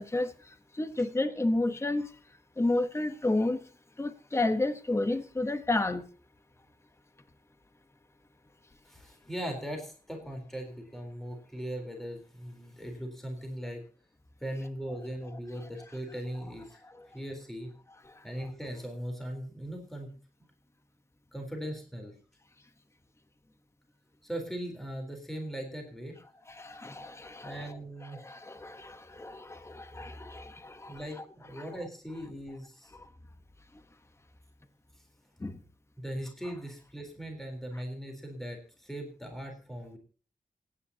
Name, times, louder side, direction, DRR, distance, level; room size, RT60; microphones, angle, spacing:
voice 1, 0.0-2.1 2.6-3.6 4.0-6.0 15.6-15.7 16.8-17.1 18.0-18.1 26.5-31.2 31.6-31.7 35.4-35.6, left 2 dB, 20° left, 9 dB, 1.1 m, -32 dB
voice 2, 8.8-13.8 14.4-16.8 17.1-17.7 18.2-20.1 21.3-22.1 24.2-26.2 27.4-28.2 30.9-33.0 36.0-40.0, equal, ahead, 2 dB, 3.9 m, -39 dB
27.5 x 9.9 x 2.9 m, 0.38 s
wide cardioid pair, 135°, 14 cm